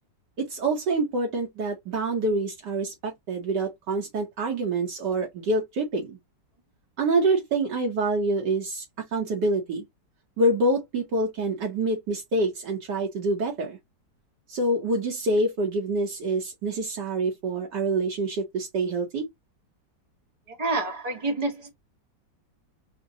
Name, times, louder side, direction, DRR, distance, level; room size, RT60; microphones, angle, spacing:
voice 1, 0.4-6.2 7.0-9.8 10.4-13.8 14.5-19.3, right 2 dB, 70° right, 1.6 m, -26 dB
voice 2, 20.5-21.7, right 2 dB, 30° right, 0.8 m, -28 dB
5.4 x 2.2 x 2.6 m
omnidirectional pair, 2.0 m